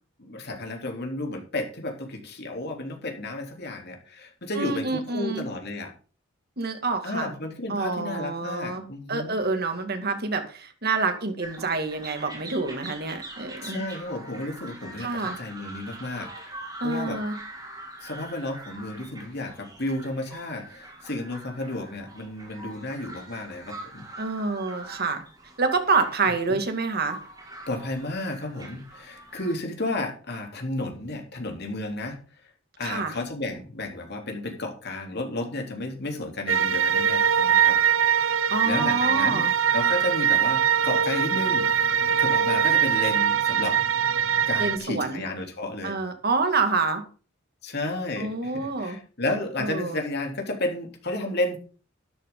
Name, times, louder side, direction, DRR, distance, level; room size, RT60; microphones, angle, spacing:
voice 1, 0.2-5.9 7.0-9.4 13.6-17.2 18.0-24.0 26.5-26.6 27.7-32.2 32.8-37.8 38.1-41.9 42.2-43.8 44.4-46.0 47.6-51.6, left 2 dB, 55° left, 3 dB, 3.3 m, -32 dB
voice 2, 4.5-5.4 6.6-7.3 7.7-13.8 15.0-15.4 16.8-17.4 24.2-25.2 25.6-27.2 32.8-33.1 38.5-39.5 44.6-45.2 45.8-47.0 48.2-49.0 49.6-50.0, right 4 dB, 50° right, 6 dB, 2.3 m, -27 dB
sound 1, 11.4-29.5, right 1 dB, 20° right, 5.0 m, -43 dB
sound 2, 36.5-44.8, right 8 dB, 75° right, 0.8 m, -22 dB
12.5 x 11.0 x 3.9 m, 0.38 s
head